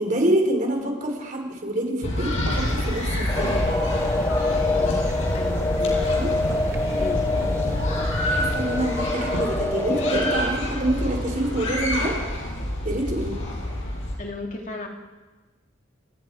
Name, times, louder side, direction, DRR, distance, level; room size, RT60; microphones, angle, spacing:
voice 1, 0.0-3.7 6.1-6.3 7.3-7.6 8.3-12.2 12.8-13.4, right 1 dB, 40° right, 2 dB, 4.4 m, -26 dB
sound 1, 2.0-14.1, left 1 dB, 80° left, 6.5 m, -27 dB
sound 2, 2.5-10.6, equal, 15° right, 1.0 m, -36 dB
sound 3, 3.3-10.4, left 2 dB, 10° left, 0.6 m, -26 dB
voice 2, 4.7-5.1 5.3-6.2 7.0-7.3 14.2-14.9, left 1 dB, 40° left, 1 dB, 2.6 m, -35 dB
30.0 x 19.0 x 4.9 m, 1.3 s
head